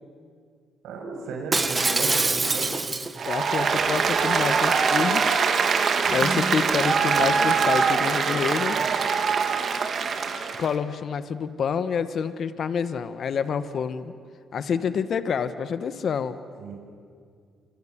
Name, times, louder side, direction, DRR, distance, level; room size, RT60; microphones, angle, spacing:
voice 1, 0.8-2.7 16.6-16.7, right 3 dB, 85° right, 1 dB, 6.9 m, -33 dB
Shatter, 1.5-3.3 3.8-4.0, right 3 dB, 25° right, 1.3 m, -24 dB
Applause, 3.2-10.7, right 5 dB, 50° right, 2.5 m, -23 dB
voice 2, 3.3-5.4 6.1-8.8 10.6-14.1 14.5-16.4, left 6 dB, 55° left, 12 dB, 1.2 m, -27 dB
27.5 x 26.0 x 7.4 m, 2.2 s
cardioid pair, 90°, 0 cm